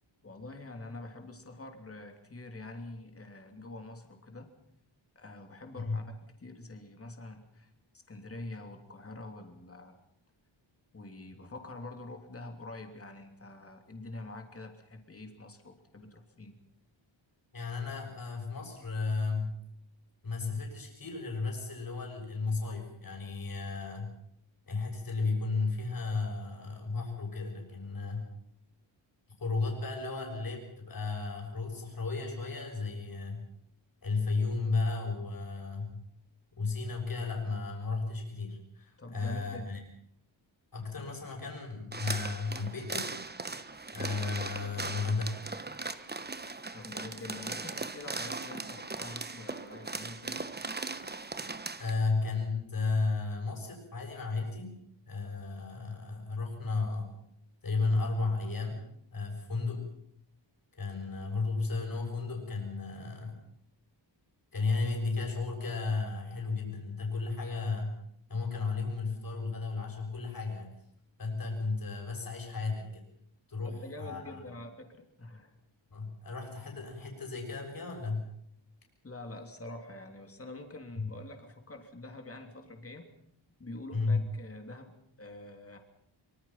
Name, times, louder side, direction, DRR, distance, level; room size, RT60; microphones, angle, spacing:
voice 1, 0.2-4.5 5.1-7.7 8.1-10.0 10.9-16.6 39.0-39.7 46.7-50.4 73.6-75.5 79.0-83.1 83.6-85.8, left 2 dB, 30° left, 5 dB, 3.1 m, -45 dB
voice 2, 17.5-19.6 20.2-24.1 24.7-28.2 29.4-33.4 34.0-36.0 36.6-39.8 40.7-43.1 43.9-45.4 51.8-54.8 55.1-57.1 57.6-58.8 59.1-59.9 60.7-63.4 64.5-67.9 68.3-70.8 71.2-73.0 73.5-74.4 75.9-78.2 81.0-81.1 83.9-84.2, left 3 dB, 45° left, 2 dB, 7.0 m, -34 dB
sound 1, 41.9-51.9, right 3 dB, 20° right, 1.1 m, -39 dB
24.5 x 24.5 x 5.9 m, 0.71 s
wide cardioid pair, 145°, 47 cm